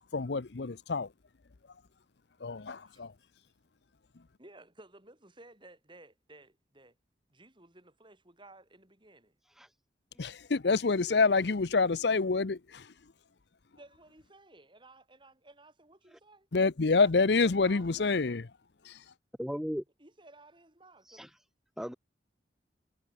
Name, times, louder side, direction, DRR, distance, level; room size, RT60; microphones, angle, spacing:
voice 1, 0.1-1.1 2.4-3.1 10.2-12.8 16.5-18.5 18.9-19.0, left 4 dB, 65° left, 0.7 m, -27 dB
voice 2, 4.4-7.0 7.3-9.4 11.4-11.5 13.7-16.5 17.0-17.1 17.4-18.0 20.0-21.3, right 2 dB, 25° right, 5.4 m, -56 dB
voice 3, 19.4-19.8 21.1-21.3 21.8-21.9, equal, ahead, 2.2 m, -36 dB
head